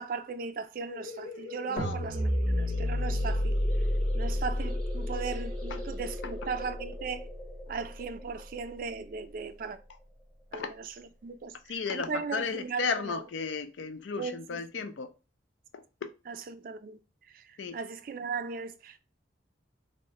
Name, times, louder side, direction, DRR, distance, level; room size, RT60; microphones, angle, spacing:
voice 1, 0.0-3.6 4.1-7.3 7.7-9.8 10.5-11.6 11.9-13.2 14.2-14.9 16.3-17.0 17.3-19.0, right 5 dB, 45° right, 0.3 m, -37 dB
sound 1, 0.9-10.2, left 2 dB, 5° left, 0.8 m, -44 dB
sound 2, 1.8-8.1, left 1 dB, 55° left, 0.7 m, -31 dB
voice 2, 11.7-15.1 15.7-16.1 17.6-17.8, left 5 dB, 85° left, 0.5 m, -34 dB
3.6 x 2.1 x 2.8 m
head